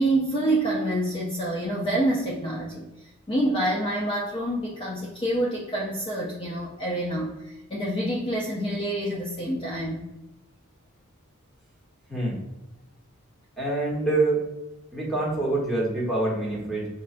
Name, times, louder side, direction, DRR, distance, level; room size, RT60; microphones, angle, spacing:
voice 1, 0.0-2.9 3.3-10.0, right 1 dB, 25° left, -3 dB, 0.4 m, -27 dB
voice 2, 13.6-14.4 14.9-16.9, right 2 dB, ahead, -6 dB, 1.1 m, -25 dB
5.4 x 2.3 x 2.4 m, 1.0 s
head